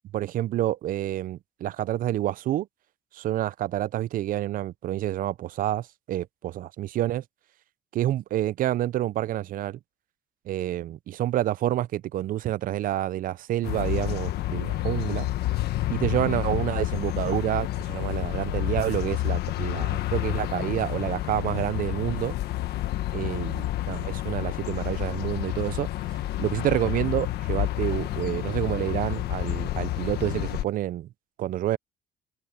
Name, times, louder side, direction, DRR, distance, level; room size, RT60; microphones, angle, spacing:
voice 1, 0.1-2.7 3.1-7.2 7.9-9.8 10.5-15.3 15.9-22.3 23.1-25.9 26.4-31.1 31.4-31.8, right 13 dB, 55° right, 0.5 m, -28 dB
sound 1, 13.6-30.6, left 15 dB, 75° left, 1.4 m, -29 dB
cardioid pair, 110°, 17 cm